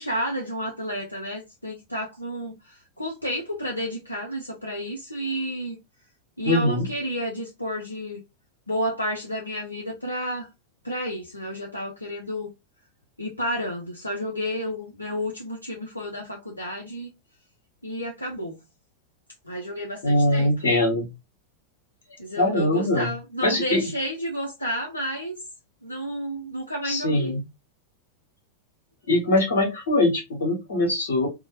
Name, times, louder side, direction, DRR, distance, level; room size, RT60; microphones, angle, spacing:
voice 1, 0.0-5.8 6.4-8.2 8.7-10.5 10.8-12.5 13.2-17.1 17.8-18.6 19.5-20.5 22.2-25.4 25.8-27.4, equal, 85° left, 0.5 m, -31 dB
voice 2, 6.4-6.9 20.0-21.1 22.4-23.1 23.4-23.8 26.8-27.4 29.1-31.3, left 1 dB, 65° left, 1.1 m, -22 dB
2.7 x 2.0 x 2.8 m
figure-of-eight pair, 90°, 0 cm